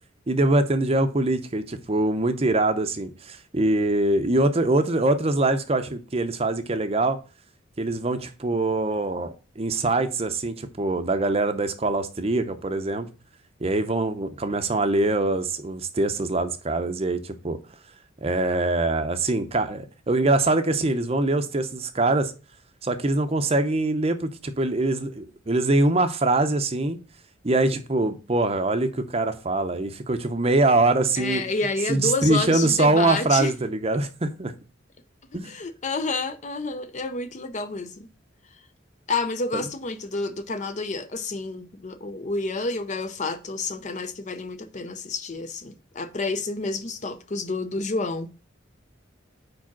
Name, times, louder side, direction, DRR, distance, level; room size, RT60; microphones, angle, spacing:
voice 1, 0.3-7.2 7.8-13.1 13.6-17.6 18.2-22.3 22.8-27.0 27.4-31.4 31.9-34.5 35.3-35.5 39.5-39.6, right 2 dB, 30° right, 0.6 m, -23 dB
voice 2, 31.2-33.5 35.4-38.1 39.1-48.3, left 3 dB, 35° left, 0.5 m, -29 dB
4.9 x 4.7 x 5.9 m
head